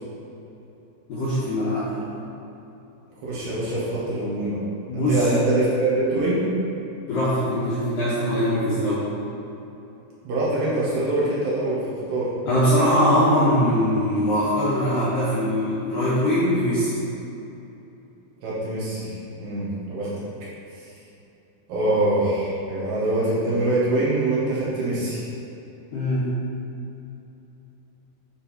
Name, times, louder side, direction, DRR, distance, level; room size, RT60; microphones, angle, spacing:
voice 1, 1.1-2.1 4.9-5.3 7.1-9.1 12.5-17.0 25.9-26.3, equal, 65° left, -11 dB, 2.3 m, -22 dB
voice 2, 3.2-4.6 5.1-6.5 10.2-11.8 12.1-12.3 18.4-20.1 21.7-25.2, right 2 dB, 60° right, -8 dB, 2.8 m, -24 dB
11.5 x 4.0 x 4.4 m, 2.9 s
omnidirectional pair, 5.8 m